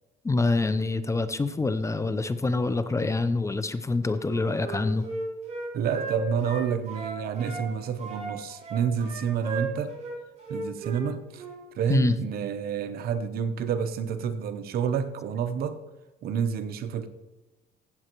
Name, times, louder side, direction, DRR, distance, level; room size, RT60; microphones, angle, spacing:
voice 1, 0.2-5.1 11.9-12.2, left 3 dB, 15° left, 0.6 m, -26 dB
Wind instrument woodwind instrument, 4.2-7.6 8.0-11.1 11.4-11.6, right 3 dB, 45° right, 3.7 m, -36 dB
voice 2, 5.7-10.0 10.5-11.4 11.7-15.8 16.2-17.1, right 7 dB, 65° right, 0.9 m, -29 dB
16.0 x 7.7 x 3.0 m
cardioid pair, 110°, 17 cm